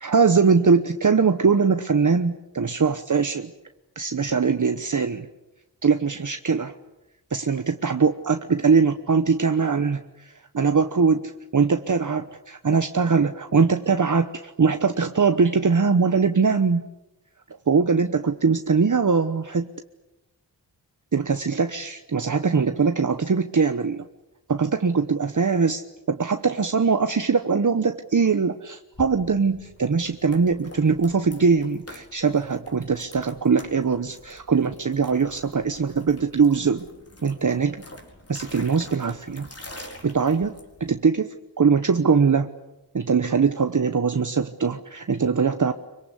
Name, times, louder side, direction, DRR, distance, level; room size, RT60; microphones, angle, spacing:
voice 1, 0.0-3.5 4.0-5.3 5.8-6.7 7.3-16.9 17.7-19.7 21.1-24.1 24.5-25.8 26.1-36.9 37.2-37.8 38.3-39.5 40.0-40.5 40.8-42.5 42.9-45.7, right 5 dB, 45° right, 8 dB, 1.1 m, -21 dB
sound 1, 28.9-41.0, left 1 dB, 35° left, 4.6 m, -46 dB
25.5 x 24.5 x 8.4 m, 0.96 s
wide cardioid pair, 90°, 42 cm